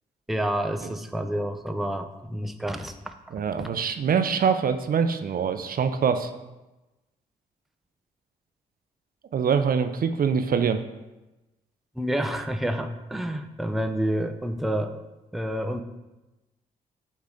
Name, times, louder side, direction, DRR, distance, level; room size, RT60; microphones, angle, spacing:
voice 1, 0.3-3.1 3.6-3.7 12.0-15.0 15.3-15.8, right 1 dB, ahead, 7 dB, 0.6 m, -29 dB
voice 2, 3.3-6.3 9.3-10.8, right 6 dB, 50° right, 8 dB, 0.6 m, -24 dB
8.0 x 3.2 x 3.8 m, 1.0 s
hypercardioid pair, 40°, 19 cm